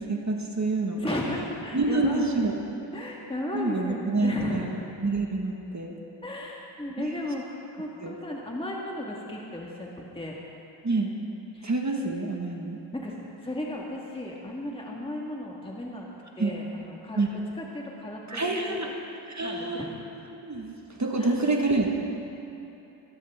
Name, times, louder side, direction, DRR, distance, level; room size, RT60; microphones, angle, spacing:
voice 1, 0.0-1.2 1.7-2.6 3.5-6.0 7.0-7.3 8.0-8.2 10.8-11.2 11.6-12.8 16.4-16.5 17.1-17.4 18.3-18.9 19.3-19.9 20.4-21.9, right 2 dB, 35° right, 1 dB, 1.6 m, -28 dB
voice 2, 1.0-2.4 2.9-4.7 6.2-9.9 10.1-10.3 11.5-11.7 12.9-13.2 13.4-16.1 16.4-17.2 17.6-18.9 19.4-19.9 21.2-21.4, left 1 dB, 10° left, -2 dB, 1.7 m, -35 dB
22.0 x 11.5 x 3.6 m, 3.0 s
cardioid pair, 65°, 47 cm